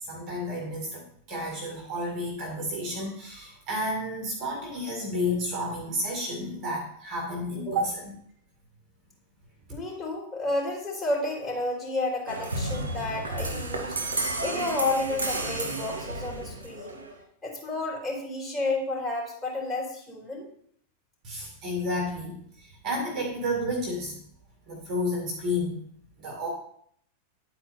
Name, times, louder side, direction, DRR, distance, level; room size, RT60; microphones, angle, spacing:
voice 1, 0.0-8.1 21.2-24.1 24.7-25.8 26.2-26.5, left 1 dB, 35° right, 0 dB, 2.1 m, -31 dB
voice 2, 9.7-14.0 14.4-17.0 17.4-20.5, left 2 dB, 10° left, -4 dB, 3.6 m, -31 dB
sound 1, 12.3-17.2, right 2 dB, 70° right, 1.2 m, -32 dB
10.5 x 4.3 x 4.3 m, 0.66 s
figure-of-eight pair, 90°, 0 cm